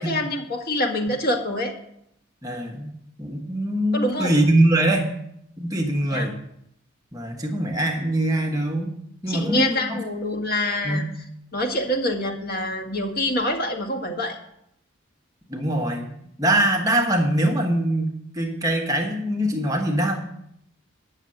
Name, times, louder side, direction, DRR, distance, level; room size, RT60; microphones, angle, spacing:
voice 1, 0.0-1.7 3.9-4.3 6.1-6.3 9.3-11.0 11.5-14.4, left 1 dB, 50° left, 2 dB, 1.9 m, -26 dB
voice 2, 2.4-5.1 5.6-6.4 7.1-8.9 9.2-10.0 10.8-11.0 15.5-16.1 16.4-20.2, right 1 dB, 15° right, 1 dB, 1.3 m, -23 dB
9.8 x 6.6 x 7.7 m, 0.74 s
head